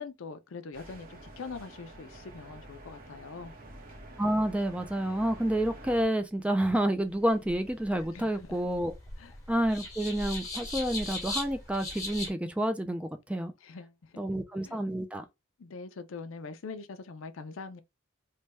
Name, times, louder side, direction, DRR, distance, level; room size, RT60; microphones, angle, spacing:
voice 1, 0.0-3.5 8.1-8.6 9.2-9.4 13.6-14.8 15.6-17.8, left 4 dB, 70° left, 0.5 m, -43 dB
sound 1, 0.7-6.1, right 1 dB, 45° right, 0.9 m, -48 dB
voice 2, 4.2-8.9 9.5-13.5 14.2-15.2, right 1 dB, 5° right, 0.3 m, -29 dB
sound 2, 7.0-12.3, left 2 dB, 15° left, 1.3 m, -39 dB
3.2 x 2.2 x 4.0 m
head